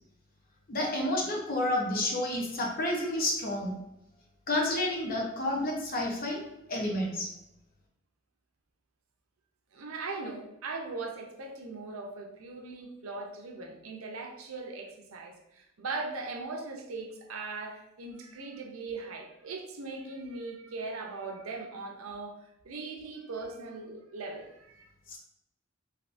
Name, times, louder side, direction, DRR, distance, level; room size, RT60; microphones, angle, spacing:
voice 1, 0.7-3.8 4.5-6.4 6.7-7.3 25.1-25.2, left 1 dB, 45° left, -1 dB, 0.7 m, -30 dB
voice 2, 9.7-24.9, right 3 dB, 90° right, 2 dB, 0.6 m, -40 dB
3.4 x 2.7 x 2.5 m, 0.83 s
head